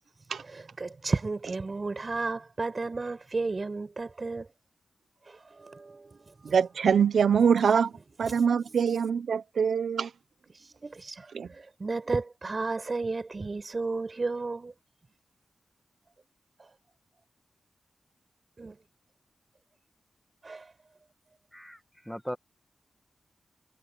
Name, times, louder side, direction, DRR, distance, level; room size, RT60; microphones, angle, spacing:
voice 1, 0.4-4.5 5.3-6.9 8.2-8.8 10.5-14.7 16.6-16.7 18.6-18.7 20.4-20.7, right 3 dB, 40° right, 7.0 m, -34 dB
voice 2, 6.5-7.9 8.2-10.1 11.3-11.5, right 7 dB, 85° right, 1.0 m, -24 dB
voice 3, 22.0-22.4, equal, ahead, 1.6 m, -37 dB
wide cardioid pair, 100°, 0 cm